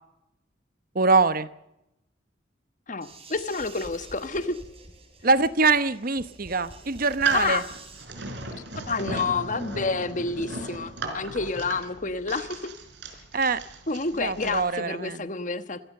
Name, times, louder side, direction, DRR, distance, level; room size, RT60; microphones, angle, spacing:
voice 1, 0.9-1.5 5.2-7.6 13.3-13.6 14.2-15.2, right 4 dB, 50° right, 13 dB, 1.0 m, -23 dB
voice 2, 2.9-4.6 7.3-7.6 8.8-12.7 13.9-15.9, left 4 dB, 45° left, 10 dB, 1.4 m, -29 dB
sound 1, 3.0-8.1, right 3 dB, 30° right, 4.6 m, -47 dB
sound 2, 7.0-14.6, right 3 dB, 70° right, 4.4 m, -35 dB
25.0 x 15.5 x 6.7 m, 0.85 s
head